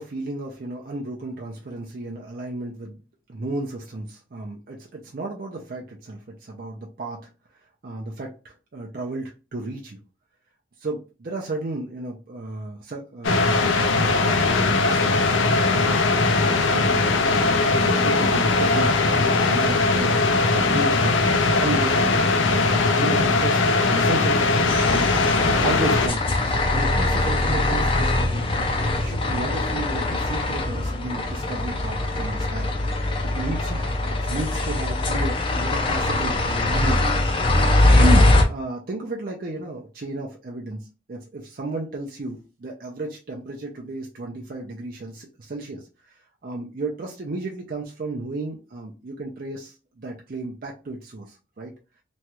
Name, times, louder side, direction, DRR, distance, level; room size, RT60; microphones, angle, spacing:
voice 1, 0.0-3.0 3.3-7.2 7.8-10.0 10.8-13.5 14.0-15.3 15.9-16.5 16.8-17.1 17.6-20.2 20.5-23.6 23.9-25.3 25.6-32.7 33.0-33.9 34.2-37.1 37.4-51.7, right 2 dB, 50° right, -1 dB, 0.5 m, -33 dB
sound 1, 13.2-26.1, left 3 dB, 90° left, 0.5 m, -20 dB
sound 2, 24.7-38.4, left 2 dB, 25° left, 0.4 m, -22 dB
3.0 x 2.3 x 2.9 m, 0.32 s
head